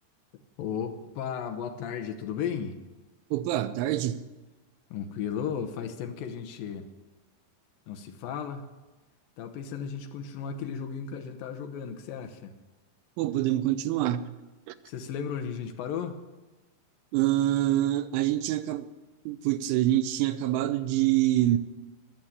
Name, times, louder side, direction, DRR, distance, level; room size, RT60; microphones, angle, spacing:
voice 1, 0.6-2.8 4.9-6.9 7.9-8.7 9.4-12.5 14.9-16.2, left 7 dB, 80° left, 6 dB, 2.1 m, -35 dB
voice 2, 3.3-4.2 13.2-14.3 14.7-14.8 17.1-18.9 19.3-21.6, right 14 dB, 90° right, 12 dB, 3.2 m, -26 dB
21.5 x 7.4 x 8.0 m, 1.2 s
omnidirectional pair, 5.4 m